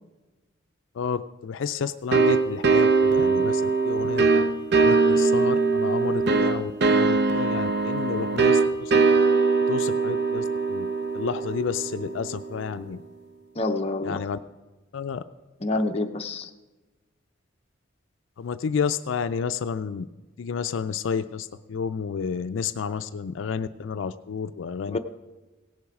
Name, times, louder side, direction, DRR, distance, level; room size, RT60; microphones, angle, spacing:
voice 1, 1.0-4.4 4.8-8.9 9.7-10.9 11.1-13.0 14.0-14.4 14.9-15.2 15.7-15.8 18.4-20.1 20.4-25.0, left 6 dB, 75° left, 11 dB, 0.4 m, -31 dB
sound 1, 2.1-12.6, right 4 dB, 60° right, 0.6 m, -22 dB
voice 2, 13.6-14.2 15.6-16.5 24.9-25.0, left 2 dB, 30° left, 5 dB, 0.7 m, -27 dB
17.0 x 7.1 x 4.8 m, 1.2 s
head